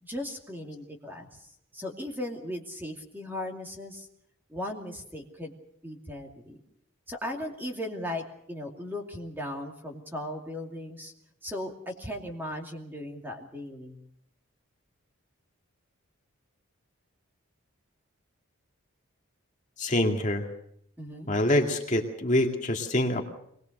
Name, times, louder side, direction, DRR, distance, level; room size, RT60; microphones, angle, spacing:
voice 1, 0.0-4.1 4.5-5.5 5.8-6.6 7.1-11.1 11.4-14.0 21.0-21.3, left 1 dB, 10° right, 2 dB, 2.5 m, -37 dB
voice 2, 19.8-20.5 21.3-23.2, left 1 dB, 35° left, 2 dB, 2.2 m, -25 dB
23.5 x 20.5 x 6.6 m, 0.72 s
head